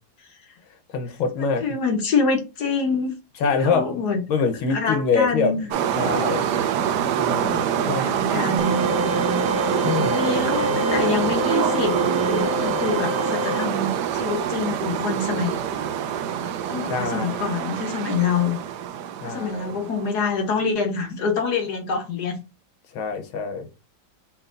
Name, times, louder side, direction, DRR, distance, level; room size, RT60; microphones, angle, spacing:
voice 1, 0.9-1.6 3.4-4.0 4.3-5.6 6.0-6.5 7.2-8.0 9.8-10.2 16.9-17.4 19.2-19.7 22.9-23.7, left 5 dB, 85° left, 1.7 m, -25 dB
voice 2, 1.4-3.2 3.4-4.2 4.7-5.7 7.7-8.9 10.1-15.6 16.7-18.6 19.2-22.4, left 4 dB, 60° left, 1.3 m, -26 dB
sound 1, 5.7-20.2, right 9 dB, 75° right, 1.1 m, -25 dB
sound 2, 8.6-13.6, left 4 dB, 25° right, 1.3 m, -28 dB
5.7 x 3.6 x 2.5 m
omnidirectional pair, 2.2 m